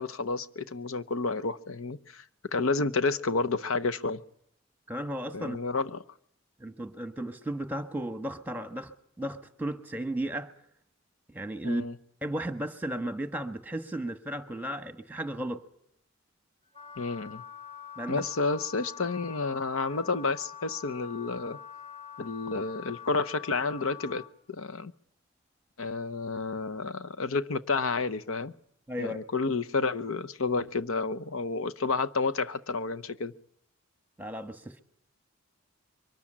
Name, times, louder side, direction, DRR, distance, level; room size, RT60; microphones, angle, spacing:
voice 1, 0.0-2.2 2.5-4.2 5.3-6.0 11.6-11.9 17.0-17.4 18.1-21.6 22.2-24.9 25.8-28.5 29.0-33.3, left 3 dB, 80° left, 0.8 m, -30 dB
voice 2, 4.9-5.6 6.6-8.9 9.2-10.5 11.3-11.9 12.2-15.6 18.0-18.2 28.9-29.2 34.2-34.8, right 1 dB, 10° right, 1.3 m, -34 dB
Wind instrument woodwind instrument, 16.7-24.3, left 8 dB, 25° left, 2.9 m, -45 dB
23.5 x 13.5 x 9.9 m
head